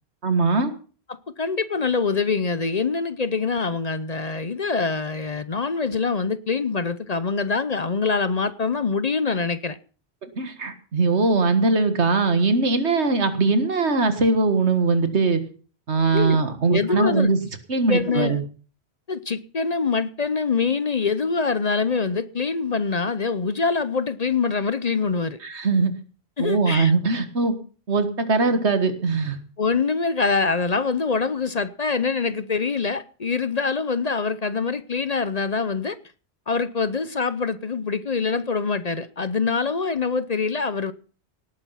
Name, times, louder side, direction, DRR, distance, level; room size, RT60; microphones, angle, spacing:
voice 1, 0.2-0.7 10.4-15.4 15.9-17.4 17.7-18.4 25.4-25.9 26.4-27.6 27.9-29.4, right 3 dB, 85° right, 2.0 m, -21 dB
voice 2, 1.1-9.8 16.1-16.4 16.7-17.3 17.9-18.4 19.1-25.4 26.4-26.9 29.6-36.0 36.5-40.9, left 4 dB, 40° left, 0.8 m, -24 dB
18.0 x 9.1 x 5.7 m
omnidirectional pair, 1.1 m